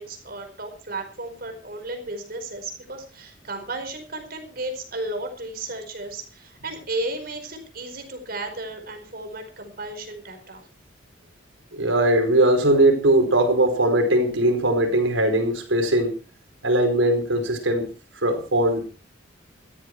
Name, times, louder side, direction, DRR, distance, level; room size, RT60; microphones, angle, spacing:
voice 1, 0.0-10.6, right 2 dB, 50° right, 4.8 m, -34 dB
voice 2, 11.7-16.1 16.6-17.9 18.2-18.8, right 1 dB, 85° right, 4.7 m, -20 dB
17.0 x 13.5 x 4.7 m
head